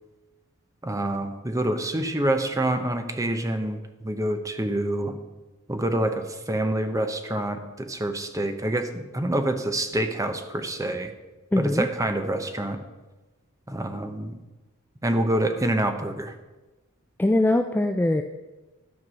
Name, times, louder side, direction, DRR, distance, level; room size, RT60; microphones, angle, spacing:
voice 1, 0.8-5.2 5.7-11.1 11.6-12.8 13.7-14.4 15.0-16.3, right 1 dB, 15° right, 7 dB, 0.8 m, -27 dB
voice 2, 11.5-11.9 17.2-18.2, left 1 dB, 10° left, 6 dB, 0.3 m, -21 dB
12.5 x 5.9 x 6.2 m, 1.2 s
head